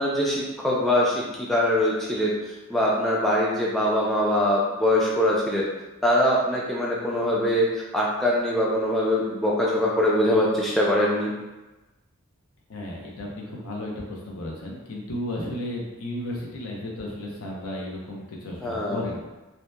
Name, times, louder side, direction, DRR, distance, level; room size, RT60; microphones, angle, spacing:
voice 1, 0.0-5.7 6.0-11.3 18.6-19.1, left 1 dB, ahead, -5 dB, 0.3 m, -23 dB
voice 2, 12.7-19.3, left 1 dB, 75° left, -2 dB, 0.6 m, -34 dB
2.7 x 2.1 x 2.2 m, 1.1 s
head